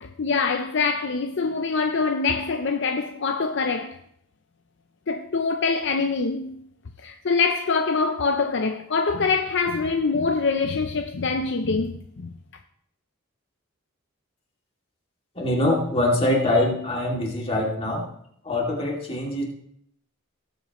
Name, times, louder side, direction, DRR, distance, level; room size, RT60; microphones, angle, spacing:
voice 1, 0.0-4.0 5.1-6.6 7.0-12.3, left 4 dB, 55° left, 0.6 m, -24 dB
voice 2, 15.4-18.1 18.4-19.4, left 1 dB, 30° left, 2.4 m, -23 dB
18.5 x 8.1 x 3.0 m
head